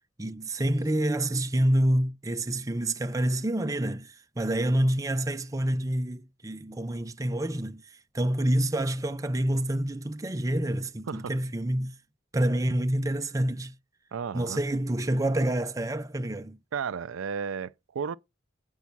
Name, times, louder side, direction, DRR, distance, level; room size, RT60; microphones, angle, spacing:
voice 1, 0.2-7.8 8.1-11.9 12.3-13.7 14.3-16.6, right 1 dB, 15° right, 0.5 m, -27 dB
voice 2, 14.1-14.6 16.7-18.2, right 6 dB, 85° right, 0.4 m, -33 dB
8.2 x 5.4 x 6.0 m
head